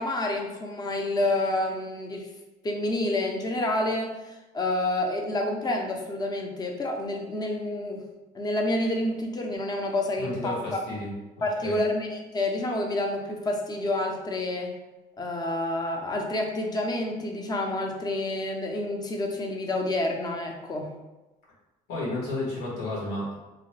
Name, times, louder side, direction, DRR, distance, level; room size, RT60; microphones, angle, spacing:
voice 1, 0.0-2.3 2.6-4.2 4.5-8.0 8.3-10.8 11.4-14.7 15.2-20.9, left 1 dB, 25° left, 2 dB, 0.5 m, -28 dB
voice 2, 10.2-11.1 11.6-11.8 21.9-23.4, left 2 dB, 90° left, -6 dB, 1.4 m, -32 dB
2.9 x 2.1 x 3.0 m, 1.1 s
cardioid pair, 110°, 17 cm